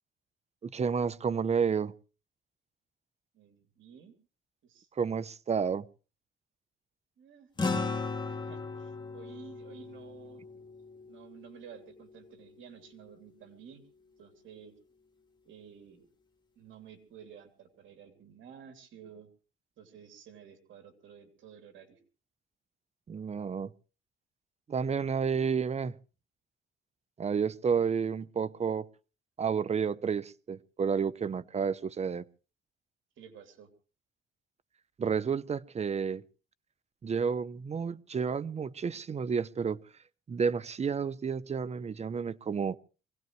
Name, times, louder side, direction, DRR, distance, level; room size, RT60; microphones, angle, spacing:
voice 1, 0.6-1.9 5.0-5.9 23.1-23.7 24.7-26.0 27.2-28.9 29.4-32.2 35.0-36.2 37.0-39.8 40.3-42.8, right 6 dB, 35° right, 0.7 m, -30 dB
voice 2, 3.3-4.1 4.6-4.9 7.2-7.5 8.3-10.4 11.1-13.8 14.2-14.7 15.5-16.1 16.6-19.3 19.8-22.0 33.2-33.7, right 7 dB, 75° right, 2.9 m, -52 dB
sound 1, 7.6-12.2, left 3 dB, 20° left, 2.6 m, -36 dB
23.5 x 17.0 x 3.2 m
cardioid pair, 90°, 20 cm